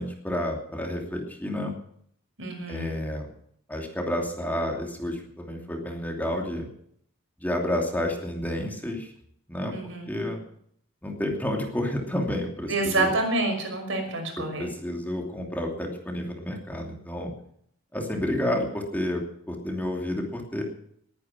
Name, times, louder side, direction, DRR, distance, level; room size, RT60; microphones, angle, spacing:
voice 1, 0.0-1.7 2.7-3.3 3.7-6.7 7.4-9.1 9.5-9.7 10.1-10.4 11.0-13.1 14.4-17.3 17.9-20.6, left 1 dB, 10° left, 1 dB, 2.8 m, -30 dB
voice 2, 2.4-3.0 9.7-10.2 12.7-14.7, right 2 dB, 75° right, 4 dB, 5.7 m, -28 dB
20.5 x 9.8 x 6.1 m, 0.67 s
head